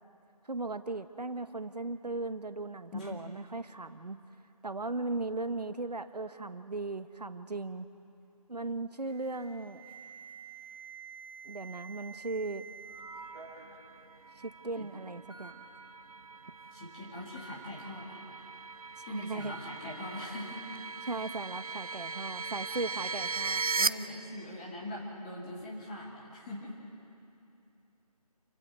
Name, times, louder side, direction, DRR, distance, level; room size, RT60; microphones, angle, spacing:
voice 1, 0.5-4.2 4.6-7.9 8.5-9.8 11.4-12.6 14.4-15.6 19.1-19.5 21.1-23.6, right 3 dB, 80° right, 11 dB, 1.0 m, -37 dB
Alarm, 9.0-13.0 13.3-13.7 14.6-14.7 15.3-15.5 17.3-17.6 19.4-19.6, right 5 dB, 20° right, 7.4 m, -49 dB
sound 1, 12.9-23.9, right 4 dB, 60° right, 0.7 m, -38 dB
voice 2, 16.7-18.5 19.0-20.6 21.8-22.0 22.7-22.8 23.8-26.7, left 1 dB, 10° left, -4 dB, 2.1 m, -42 dB
28.5 x 24.5 x 4.3 m, 2.7 s
figure-of-eight pair, 165°, 20 cm